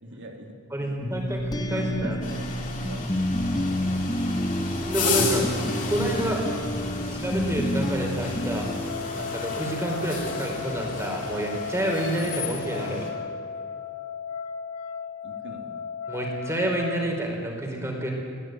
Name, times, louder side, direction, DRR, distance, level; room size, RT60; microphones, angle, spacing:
voice 1, 0.0-1.3 1.7-3.1 15.2-15.8, equal, 55° right, 3 dB, 3.2 m, -42 dB
voice 2, 0.7-2.2 4.8-5.5 5.9-6.4 7.0-8.7 9.1-13.1 16.1-18.1, right 1 dB, 10° right, 0 dB, 4.7 m, -29 dB
sound 1, 1.0-9.7, left 1 dB, 20° left, 1.0 m, -29 dB
sound 2, 2.2-13.1, left 4 dB, 35° left, 3.7 m, -33 dB
sound 3, 8.9-17.1, left 6 dB, 90° left, 1.6 m, -36 dB
23.0 x 16.5 x 9.4 m, 2.2 s
head